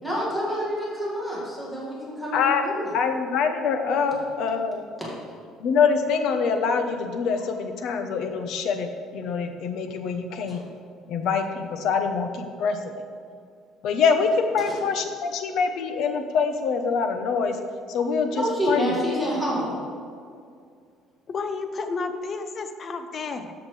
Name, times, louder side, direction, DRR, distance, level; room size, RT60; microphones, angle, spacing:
voice 1, 0.0-2.9 5.0-5.1 10.5-10.6 14.6-14.8 18.3-19.8, equal, 5° left, -7 dB, 2.0 m, -28 dB
voice 2, 2.3-2.6 2.9-4.9 5.6-10.6 11.1-12.9 13.8-17.6 17.9-19.0 19.3-19.4, left 5 dB, 55° left, 6 dB, 0.9 m, -25 dB
voice 3, 21.3-23.5, left 4 dB, 30° left, 8 dB, 0.6 m, -31 dB
13.0 x 7.2 x 3.3 m, 2.2 s
cardioid pair, 170°, 0 cm